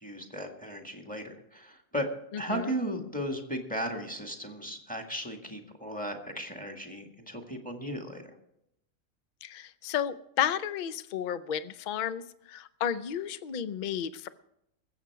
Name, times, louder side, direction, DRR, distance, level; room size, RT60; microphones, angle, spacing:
voice 1, 0.0-2.1 2.4-8.2, equal, 5° left, 3 dB, 1.7 m, -36 dB
voice 2, 2.3-2.7 9.4-14.3, left 9 dB, 50° left, 14 dB, 0.5 m, -32 dB
21.0 x 8.0 x 4.7 m, 0.79 s
omnidirectional pair, 1.4 m